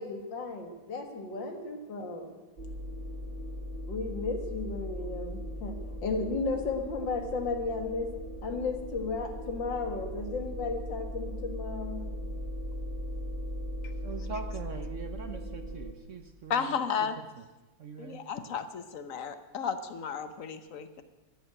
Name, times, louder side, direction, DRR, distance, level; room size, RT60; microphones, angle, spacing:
voice 1, 0.0-2.3 3.9-5.7 6.0-8.1 8.4-12.1, left 3 dB, 80° left, 5 dB, 2.4 m, -34 dB
sound 1, 2.6-15.9, equal, 35° right, 1.2 m, -38 dB
voice 2, 14.0-17.5 17.8-18.2, right 5 dB, 55° right, 8 dB, 1.0 m, -42 dB
voice 3, 16.5-17.2 18.0-21.0, left 7 dB, 50° left, 11 dB, 1.2 m, -33 dB
14.5 x 10.5 x 7.7 m, 1.2 s
omnidirectional pair, 2.0 m